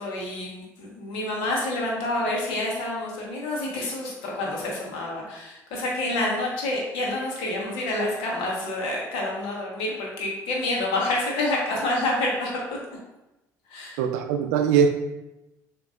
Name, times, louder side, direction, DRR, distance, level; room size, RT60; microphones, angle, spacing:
voice 1, 0.0-12.6 13.7-14.0, left 2 dB, 70° left, -3 dB, 1.4 m, -28 dB
voice 2, 14.0-14.9, right 7 dB, 75° right, 7 dB, 0.4 m, -21 dB
7.0 x 2.9 x 2.5 m, 0.97 s
hypercardioid pair, 55°, 9 cm